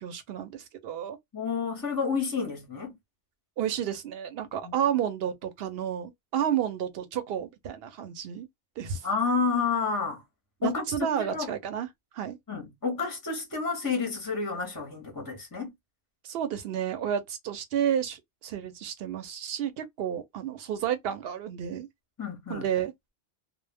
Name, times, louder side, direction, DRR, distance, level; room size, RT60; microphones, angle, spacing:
voice 1, 0.0-1.2 3.6-8.5 8.8-9.1 10.6-11.9 12.1-12.4 16.2-21.9 22.5-22.9, right 9 dB, 65° right, 0.7 m, -31 dB
voice 2, 1.3-2.9 4.6-4.7 9.0-10.2 10.6-10.8 11.2-11.5 12.5-15.7 22.2-22.6, left 5 dB, 25° left, 0.6 m, -30 dB
2.1 x 2.0 x 3.2 m
omnidirectional pair, 1.2 m